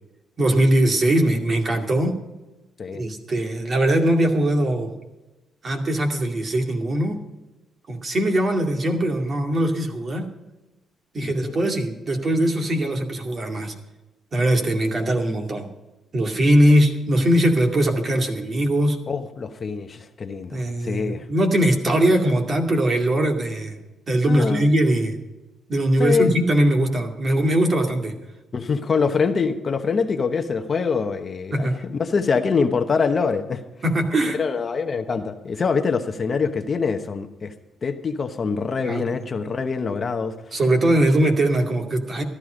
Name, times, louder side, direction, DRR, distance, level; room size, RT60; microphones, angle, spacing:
voice 1, 0.4-2.1 2.9-4.9 5.6-7.2 7.9-10.3 11.1-13.7 14.3-15.7 16.1-19.0 20.5-23.8 24.1-25.2 25.7-28.2 31.5-31.8 33.8-34.4 38.8-39.0 40.5-42.2, right 1 dB, 40° right, 3 dB, 2.2 m, -21 dB
voice 2, 11.2-11.5 19.1-21.3 24.3-24.6 26.0-26.4 28.5-33.6 34.4-37.5 37.8-40.6, left 5 dB, 40° left, 7 dB, 1.1 m, -24 dB
14.5 x 11.5 x 5.1 m, 1.1 s
cardioid pair, 90°, 0 cm